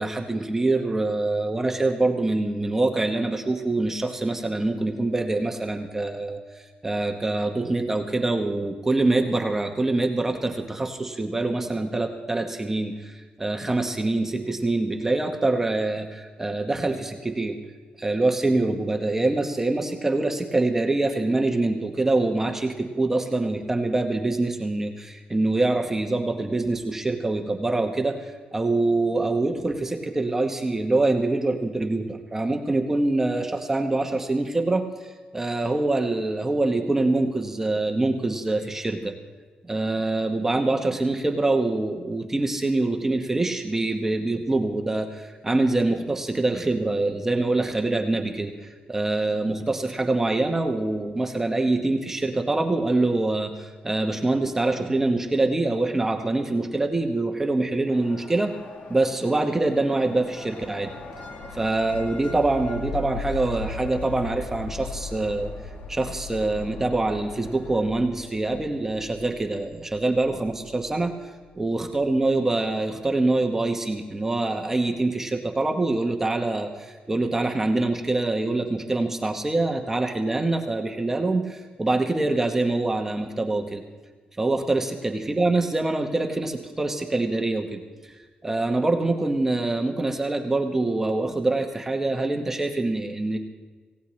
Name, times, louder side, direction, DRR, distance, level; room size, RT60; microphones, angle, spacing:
voice 1, 0.0-6.4 6.8-17.6 18.0-39.1 39.7-48.5 48.9-58.5 58.9-60.9 61.6-65.5 65.9-71.1 71.5-83.8 84.4-88.1 88.4-93.4, right 2 dB, 15° right, 3 dB, 1.0 m, -25 dB
sound 1, 57.9-67.9, left 2 dB, 45° left, 1.3 m, -43 dB
sound 2, 61.4-72.1, left 3 dB, 75° left, 2.2 m, -39 dB
26.5 x 16.5 x 3.2 m, 1.4 s
wide cardioid pair, 165°, 3 cm